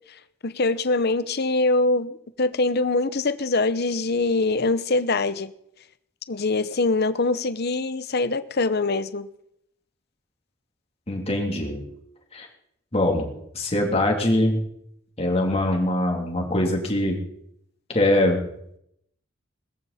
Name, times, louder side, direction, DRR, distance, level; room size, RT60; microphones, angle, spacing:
voice 1, 0.4-5.5 6.3-9.3, left 3 dB, 50° left, 0.8 m, -23 dB
voice 2, 11.1-11.8 12.3-12.5 12.9-13.3 13.5-14.6 15.2-17.2 17.9-18.4, left 1 dB, 30° left, 3.3 m, -22 dB
20.5 x 14.5 x 4.3 m
head